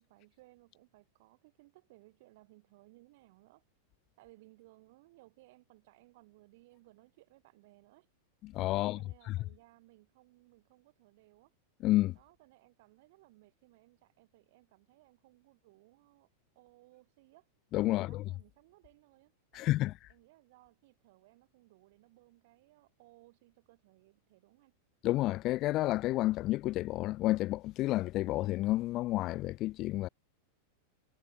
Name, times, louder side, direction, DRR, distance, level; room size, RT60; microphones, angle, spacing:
voice 1, 0.0-3.6 4.2-8.1 8.7-11.5 12.1-16.3 16.6-17.5 17.8-24.8, right 21 dB, 50° right, 7.2 m, -62 dB
voice 2, 8.4-9.0 9.3-9.4 11.8-12.2 17.7-18.2 19.5-19.9 25.0-30.1, left 17 dB, 35° left, 0.5 m, -30 dB
figure-of-eight pair, 90°, 0 cm